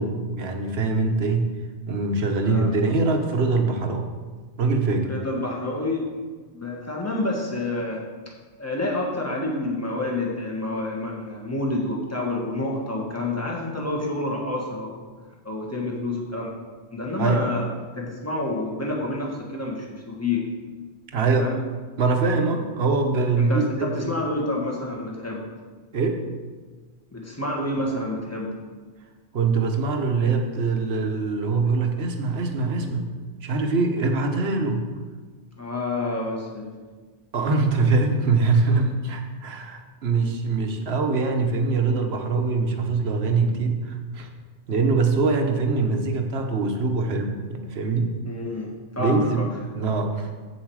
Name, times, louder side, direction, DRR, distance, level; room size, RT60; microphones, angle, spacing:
voice 1, 0.0-1.5 1.9-4.1 4.6-5.2 17.2-17.5 21.1-21.5 22.0-24.2 25.9-26.2 29.3-33.1 33.4-34.9 37.3-44.3 44.7-48.2 49.0-49.4 49.7-50.3, right 3 dB, 60° right, 4 dB, 1.2 m, -23 dB
voice 2, 5.0-6.1 6.5-8.0 8.6-15.0 15.4-16.5 16.9-17.6 17.9-20.4 21.4-21.6 23.4-25.4 27.1-28.5 35.6-36.7 48.3-49.4, left 2 dB, 15° left, -2 dB, 1.6 m, -28 dB
8.0 x 7.5 x 4.8 m, 1.4 s
omnidirectional pair, 1.2 m